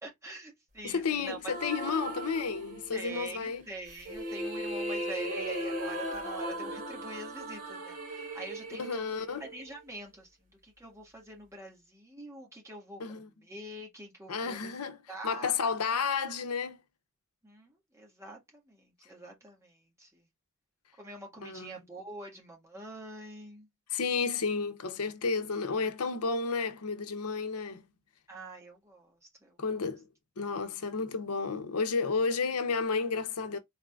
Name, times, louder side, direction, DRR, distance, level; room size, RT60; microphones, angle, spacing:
voice 1, 0.0-1.5 2.9-14.7 15.1-15.6 17.4-20.3 21.0-23.7 28.3-29.8, right 2 dB, 15° right, 1.7 m, -45 dB
voice 2, 0.8-3.6 8.7-9.4 13.0-13.2 14.3-15.0 15.2-16.8 21.4-21.8 23.9-27.8 29.6-30.1 30.4-33.6, left 5 dB, 90° left, 0.7 m, -31 dB
sound 1, 1.4-3.1 3.9-10.0, right 1 dB, 40° right, 2.8 m, -37 dB
4.1 x 3.6 x 2.3 m
head